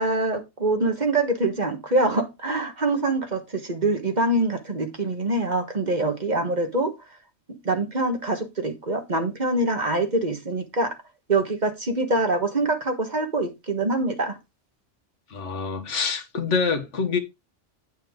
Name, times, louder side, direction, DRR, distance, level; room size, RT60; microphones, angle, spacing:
voice 1, 0.0-6.9 7.5-10.9 11.3-14.4, right 2 dB, 40° right, 1.4 m, -24 dB
voice 2, 15.3-17.2, left 5 dB, 80° left, 1.6 m, -26 dB
9.2 x 6.3 x 3.7 m
omnidirectional pair, 1.2 m